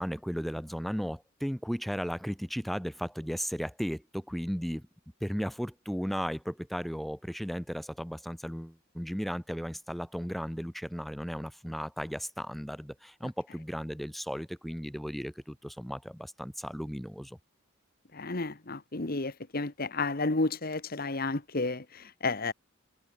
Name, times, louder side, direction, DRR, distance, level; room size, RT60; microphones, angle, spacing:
voice 1, 0.0-4.9 5.2-17.4, equal, ahead, 1.3 m, -35 dB
voice 2, 18.1-22.5, left 3 dB, 45° left, 1.3 m, -32 dB
head